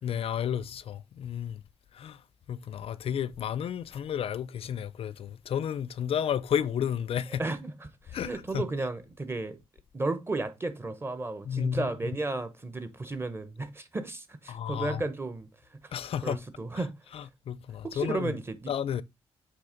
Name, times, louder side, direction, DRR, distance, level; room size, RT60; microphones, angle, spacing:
voice 1, 0.0-1.6 1.9-2.2 2.5-7.4 8.1-8.6 11.4-11.8 14.5-15.0 15.9-16.4 17.1-18.3 18.7-19.0, left 9 dB, 65° left, 0.5 m, -32 dB
voice 2, 7.4-9.6 9.9-15.5 16.2-16.9 17.9-18.7, right 2 dB, 25° right, 1.1 m, -33 dB
8.0 x 3.3 x 5.1 m
cardioid pair, 110°, 10 cm